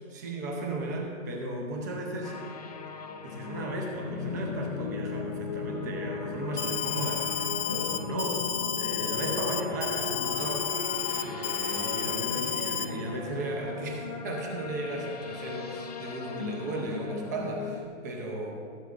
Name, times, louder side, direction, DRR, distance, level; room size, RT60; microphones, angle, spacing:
voice 1, 0.1-2.4 3.2-8.4 8.8-10.6 10.9-18.5, right 2 dB, 15° right, 0 dB, 0.6 m, -35 dB
sound 1, 2.2-17.9, left 4 dB, 30° left, 0.5 m, -38 dB
sound 2, 2.7-2.8 3.9-15.7 16.9-17.0, left 5 dB, 85° left, 1.5 m, -43 dB
Alarm, 6.6-12.9, left 9 dB, 65° left, 0.9 m, -31 dB
15.5 x 8.1 x 2.5 m, 2.2 s
hypercardioid pair, 160°, 39 cm